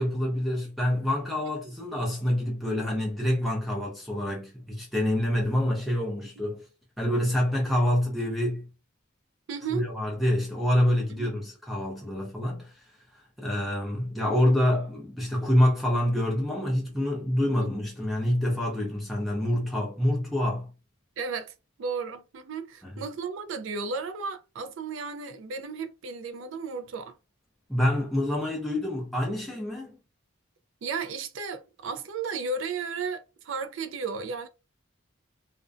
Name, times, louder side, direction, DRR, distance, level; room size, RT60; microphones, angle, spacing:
voice 1, 0.0-6.7 7.0-8.7 9.7-12.8 13.4-20.7 22.8-23.0 27.7-30.0, left 1 dB, ahead, 0.5 m, -26 dB
voice 2, 9.5-9.8 11.2-11.3 17.6-17.7 21.2-21.5 21.8-27.2 30.8-34.5, right 4 dB, 65° right, 0.4 m, -34 dB
2.4 x 2.1 x 2.4 m
head